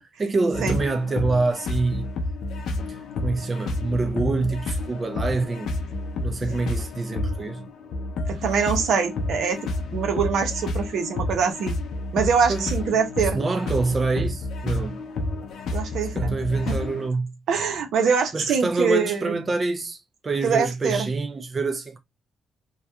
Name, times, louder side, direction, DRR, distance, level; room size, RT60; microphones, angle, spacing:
voice 1, 0.0-2.1 2.9-5.8 6.2-7.7 12.5-12.7 13.3-15.0 16.1-17.4 18.3-22.0, right 3 dB, 30° right, 0.4 m, -26 dB
sound 1, 0.5-17.1, left 2 dB, 75° left, 0.5 m, -30 dB
voice 2, 8.3-9.6 9.9-11.8 12.1-13.4 15.7-16.4 16.7-16.8 17.5-19.3 20.4-21.1, right 6 dB, 75° right, 0.7 m, -23 dB
2.7 x 2.2 x 2.2 m
cardioid pair, 90°, 0 cm